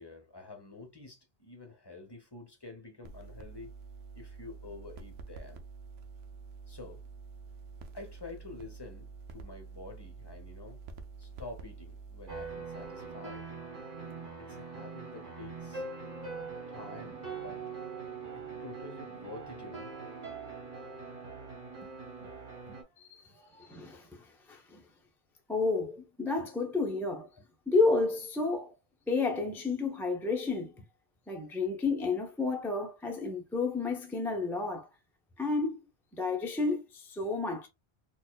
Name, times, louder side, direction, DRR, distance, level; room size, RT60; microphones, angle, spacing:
voice 1, 0.0-3.7 4.1-5.6 6.7-7.0 7.9-10.8 11.2-13.5 14.4-15.8 16.7-17.7 18.3-19.9 22.7-24.0, left 3 dB, 25° left, 0.8 m, -48 dB
sound 1, 3.0-13.3, right 4 dB, 75° right, 0.8 m, -48 dB
sound 2, 12.3-22.8, right 4 dB, 50° right, 1.5 m, -42 dB
voice 2, 22.7-23.3 23.6-24.8 25.5-27.3 27.7-28.7 29.1-30.8 31.3-34.9 35.4-35.8 36.1-37.7, left 3 dB, 5° left, 0.4 m, -31 dB
4.2 x 2.5 x 2.2 m
omnidirectional pair, 1.1 m